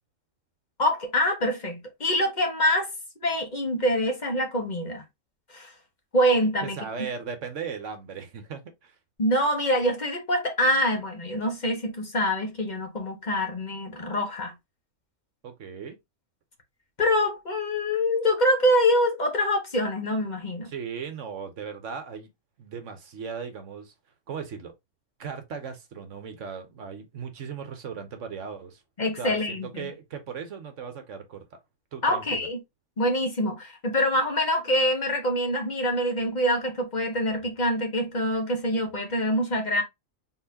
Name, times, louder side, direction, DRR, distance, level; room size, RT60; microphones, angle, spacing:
voice 1, 0.8-2.9 3.2-5.0 5.5-5.7 6.1-6.8 9.2-14.5 17.0-20.7 29.0-29.9 32.0-32.6 33.0-39.8, equal, 35° left, 1.3 m, -25 dB
voice 2, 6.6-8.9 15.4-16.0 20.7-22.3 22.6-23.9 24.3-24.7 25.2-28.8 29.2-31.4 31.9-32.5, right 6 dB, 65° right, 1.2 m, -37 dB
4.3 x 3.7 x 2.8 m
omnidirectional pair, 1.4 m